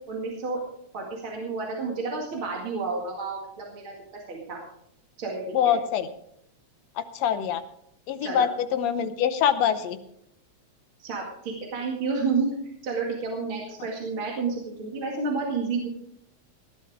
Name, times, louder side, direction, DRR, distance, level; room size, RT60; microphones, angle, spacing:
voice 1, 0.1-0.6 0.9-3.9 4.3-4.6 5.2-5.8 8.2-8.5 11.0-12.5 12.8-15.9, right 4 dB, 45° right, -2 dB, 2.8 m, -30 dB
voice 2, 5.5-6.1 7.0-7.6 8.1-10.0, left 9 dB, 70° left, 11 dB, 1.9 m, -24 dB
17.5 x 11.5 x 3.6 m, 0.72 s
omnidirectional pair, 3.4 m